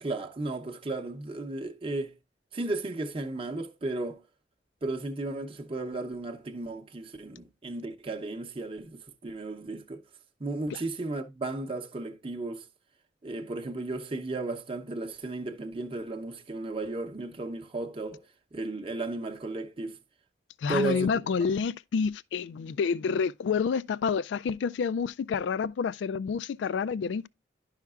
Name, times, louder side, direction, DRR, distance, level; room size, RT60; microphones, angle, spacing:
voice 1, 0.0-2.2 2.5-4.2 4.8-10.0 10.4-12.7 13.2-18.2 18.5-20.0 20.7-21.1, right 2 dB, 30° right, 0.7 m, -34 dB
voice 2, 20.6-27.3, left 6 dB, 70° left, 0.3 m, -29 dB
10.5 x 5.7 x 2.3 m
head